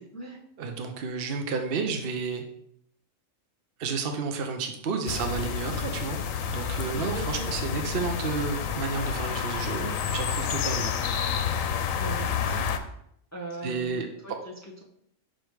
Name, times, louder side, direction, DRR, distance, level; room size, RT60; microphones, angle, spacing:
voice 1, 0.6-2.4 3.8-6.2 6.5-10.9 13.6-14.1, right 5 dB, 50° right, 4 dB, 0.9 m, -31 dB
sound 1, 5.1-12.8, left 7 dB, 80° left, 1.1 m, -29 dB
voice 2, 6.9-7.6 9.7-10.0 11.9-12.6 13.3-14.8, right 2 dB, 15° left, -2 dB, 0.9 m, -40 dB
6.3 x 5.0 x 4.7 m, 0.72 s
omnidirectional pair, 1.4 m